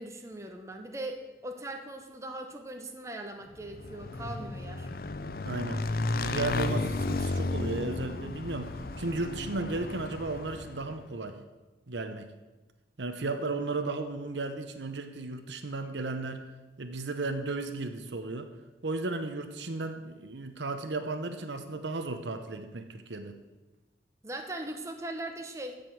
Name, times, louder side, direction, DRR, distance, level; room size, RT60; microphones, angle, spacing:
voice 1, 0.0-4.9 24.2-25.7, right 1 dB, 15° right, 4 dB, 0.9 m, -40 dB
Motorcycle / Engine, 3.6-11.0, left 2 dB, 55° left, 0.6 m, -33 dB
voice 2, 5.4-5.8 6.1-11.4 11.9-12.3 13.0-16.5 16.8-18.5 18.8-23.4, right 3 dB, 90° right, 7 dB, 0.9 m, -34 dB
15.0 x 5.3 x 7.6 m, 1.2 s
head